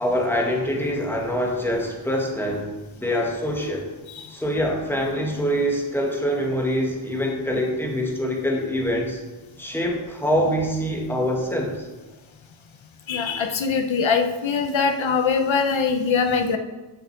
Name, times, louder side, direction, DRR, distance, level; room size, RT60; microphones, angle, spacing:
voice 1, 0.0-2.7 3.0-3.9 4.3-9.2 9.6-11.9, equal, 5° left, -1 dB, 1.8 m, -24 dB
voice 2, 13.1-16.6, left 5 dB, 70° left, 7 dB, 1.0 m, -22 dB
6.7 x 6.4 x 5.9 m, 1.2 s
wide cardioid pair, 85°, 47 cm